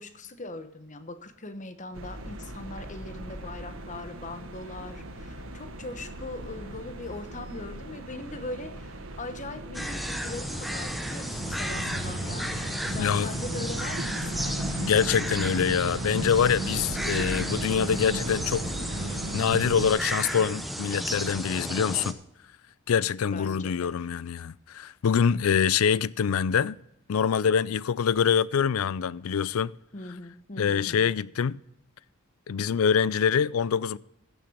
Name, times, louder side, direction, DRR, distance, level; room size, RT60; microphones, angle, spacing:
voice 1, 0.0-14.6 23.3-23.9 29.9-31.1, left 2 dB, 35° left, 1.0 m, -40 dB
sound 1, 1.9-19.9, right 1 dB, 70° right, 1.5 m, -36 dB
sound 2, 9.7-22.1, equal, ahead, 0.9 m, -34 dB
voice 2, 13.0-13.3 14.8-18.6 19.3-22.2 22.9-26.8 27.1-29.7 30.6-31.6 32.5-34.0, left 7 dB, 80° left, 0.4 m, -25 dB
15.0 x 7.0 x 5.0 m
head